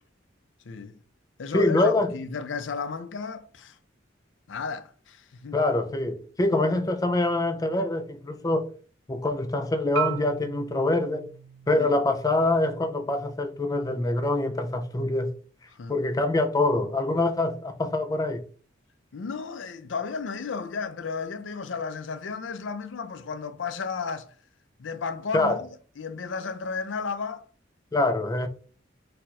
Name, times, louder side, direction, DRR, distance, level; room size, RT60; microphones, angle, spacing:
voice 1, 0.6-1.0 1.4-3.8 4.5-5.6 11.8-12.0 15.8-16.0 19.1-24.3 24.8-25.7 26.0-27.4, left 5 dB, 70° left, 0.5 m, -33 dB
voice 2, 1.5-2.1 5.5-8.7 9.1-11.3 11.7-15.3 15.9-18.4 25.3-25.6 27.9-28.5, left 2 dB, 20° left, 0.4 m, -25 dB
Marimba xylophone, 10.0-14.1, right 10 dB, 85° right, 0.6 m, -38 dB
4.3 x 2.5 x 4.1 m
head